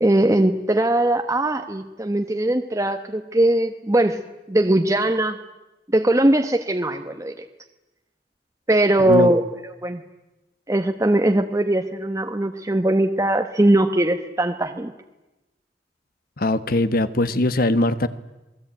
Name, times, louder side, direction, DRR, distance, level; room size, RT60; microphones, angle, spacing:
voice 1, 0.0-4.2 4.5-5.4 5.9-7.3 8.7-9.4 9.8-10.0 10.7-14.9, right 1 dB, 20° right, 5 dB, 1.0 m, -20 dB
voice 2, 16.4-18.1, left 2 dB, 55° left, 13 dB, 1.3 m, -21 dB
27.5 x 20.0 x 9.0 m, 1.0 s
head